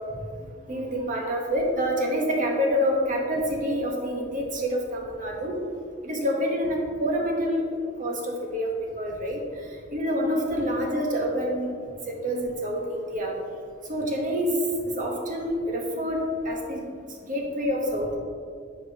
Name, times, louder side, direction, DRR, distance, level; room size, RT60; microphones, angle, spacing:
voice 1, 0.7-5.6 6.0-7.6 8.0-8.7 9.0-9.4 9.9-11.7 12.1-13.3 13.9-14.6 15.0-16.2 16.4-16.8 17.3-18.2, equal, 45° right, 0 dB, 1.1 m, -27 dB
9.6 x 4.8 x 2.8 m, 2.2 s
head